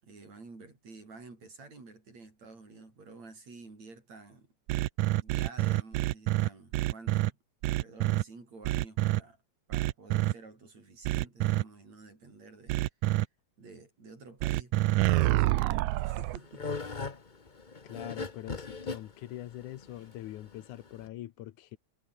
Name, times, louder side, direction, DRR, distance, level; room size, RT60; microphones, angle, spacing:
voice 1, 0.0-4.5 5.2-7.4 7.6-9.4 9.7-12.8 13.6-16.7, right 3 dB, 65° right, 8.1 m, -50 dB
sound 1, 4.7-7.3 7.6-8.2 8.6-9.2 9.7-10.3 11.0-11.6 12.7-13.2 14.4-16.4, right 18 dB, 80° right, 2.1 m, -27 dB
sound 2, 15.9-21.1, left 4 dB, 60° left, 0.4 m, -39 dB
voice 2, 17.8-21.8, left 14 dB, 85° left, 2.5 m, -43 dB
omnidirectional pair, 3.4 m